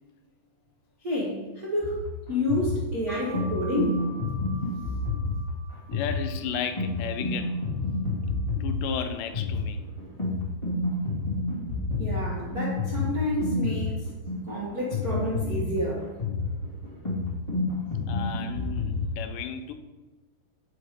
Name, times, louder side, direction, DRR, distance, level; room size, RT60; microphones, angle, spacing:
voice 1, 1.0-4.0 12.0-14.0 14.5-16.1, left 1 dB, 70° right, 0.8 m, -29 dB
sound 1, 1.8-19.1, left 2 dB, 25° left, 0.6 m, -29 dB
sound 2, 3.1-8.3, right 2 dB, 30° right, 1.6 m, -46 dB
voice 2, 5.9-7.5 8.6-9.8 18.1-19.7, left 8 dB, 90° left, 2.2 m, -34 dB
6.9 x 4.7 x 5.0 m
omnidirectional pair, 3.7 m